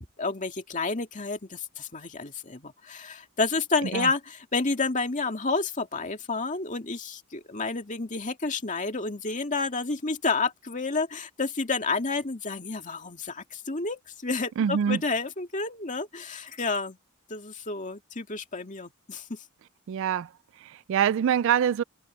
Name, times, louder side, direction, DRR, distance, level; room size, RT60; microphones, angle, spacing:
voice 1, 0.0-17.0 17.3-19.4, left 3 dB, 35° left, 2.3 m, -30 dB
voice 2, 14.6-15.0 19.9-20.3 20.6-21.8, right 8 dB, 60° right, 0.3 m, -25 dB
head